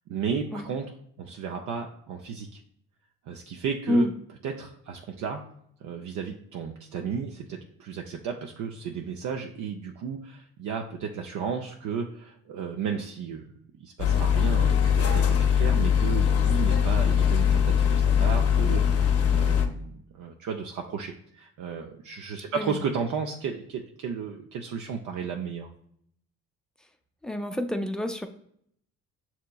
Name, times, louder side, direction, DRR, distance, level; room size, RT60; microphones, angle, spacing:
voice 1, 0.1-0.9 1.2-2.6 3.2-4.1 4.4-5.5 5.8-13.5 13.8-25.7, right 6 dB, 75° right, 2 dB, 0.5 m, -34 dB
sound 1, 14.0-19.7, left 8 dB, 55° left, 0.6 m, -22 dB
voice 2, 27.2-28.3, left 1 dB, ahead, 5 dB, 0.4 m, -27 dB
6.4 x 2.9 x 2.3 m, 0.69 s
cardioid pair, 90°, 30 cm